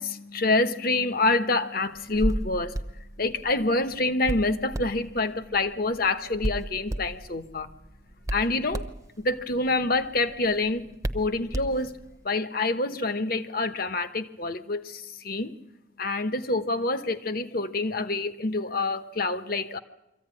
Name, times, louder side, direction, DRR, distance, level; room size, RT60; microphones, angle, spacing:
voice 1, 0.0-2.7 3.2-7.7 8.3-8.9 9.2-10.9 11.1-12.0 12.2-15.5 16.0-19.8, left 2 dB, 50° left, 11 dB, 1.1 m, -27 dB
Hands, 1.9-12.2, right 1 dB, 15° right, 0.9 m, -35 dB
24.0 x 15.0 x 9.8 m, 0.90 s
head